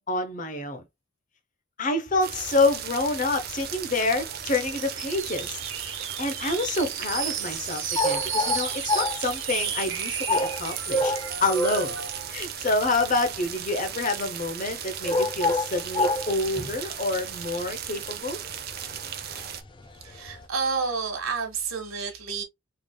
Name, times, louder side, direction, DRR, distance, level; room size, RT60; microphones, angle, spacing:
voice 1, 0.1-0.8 1.8-5.6 6.2-11.1 11.4-12.0 12.3-18.4, left 2 dB, 40° left, 0.8 m, -27 dB
sound 1, 2.1-20.5, left 2 dB, 20° left, 0.4 m, -31 dB
sound 2, 2.2-19.6, right 9 dB, 45° right, 0.6 m, -37 dB
sound 3, 4.3-12.3, right 7 dB, 60° right, 1.1 m, -34 dB
voice 2, 20.0-22.4, right 5 dB, 80° right, 1.3 m, -30 dB
3.7 x 3.4 x 2.2 m
head